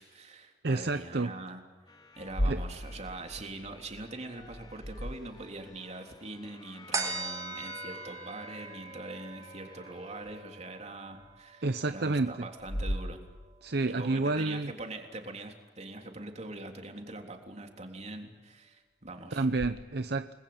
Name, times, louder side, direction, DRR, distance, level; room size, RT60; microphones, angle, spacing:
voice 1, 0.0-1.6 2.2-13.2 13.9-19.5, right 2 dB, 40° right, 3 dB, 3.6 m, -43 dB
voice 2, 0.6-1.3 2.5-2.6 11.6-12.3 13.6-14.7 19.3-20.3, right 3 dB, 60° right, 10 dB, 0.8 m, -29 dB
sound 1, 1.9-10.4, left 3 dB, 25° left, 2.3 m, -52 dB
sound 2, 2.2-5.8 10.2-10.3 11.2-11.3 12.6-13.9 19.5-19.7, equal, 90° left, 2.4 m, -36 dB
sound 3, 6.9-13.7 14.1-14.2, right 3 dB, 20° right, 4.1 m, -41 dB
29.5 x 21.0 x 8.8 m, 1.3 s
head